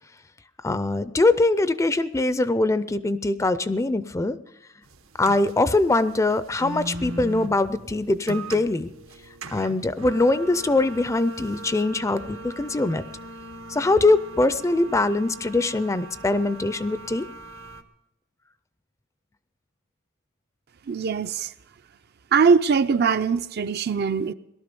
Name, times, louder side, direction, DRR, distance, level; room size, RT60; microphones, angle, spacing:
voice 1, 0.6-4.4 5.2-8.9 9.5-13.0 13.7-17.3, left 2 dB, 15° left, 0.4 m, -22 dB
sound 1, 4.9-17.8, right 1 dB, 80° right, 1.1 m, -40 dB
voice 2, 20.9-21.5 22.3-24.3, right 5 dB, 50° right, 0.5 m, -21 dB
18.5 x 12.5 x 5.3 m
head